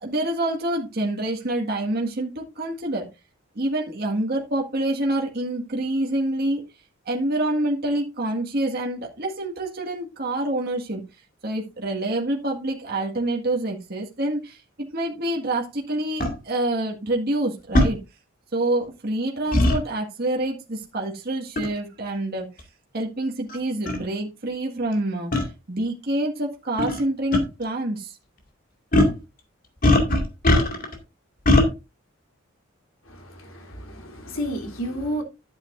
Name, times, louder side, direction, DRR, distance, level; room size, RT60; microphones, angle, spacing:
voice 1, 0.0-3.1 3.5-6.6 7.0-11.0 11.4-18.0 18.5-22.4 22.9-28.1, right 1 dB, 50° right, 1.8 m, -27 dB
sound 1, 16.2-16.3 17.7-17.9 19.5-19.8 21.6-21.8 22.6-22.7 23.5-23.6 23.9-24.0 25.3-25.5 26.8-27.0 27.3-27.4 28.9-29.2 29.8-30.9 31.5-31.7, left 1 dB, 45° left, 2.2 m, -19 dB
voice 2, 33.1-35.2, equal, 80° left, 3.2 m, -31 dB
11.5 x 8.8 x 2.6 m
head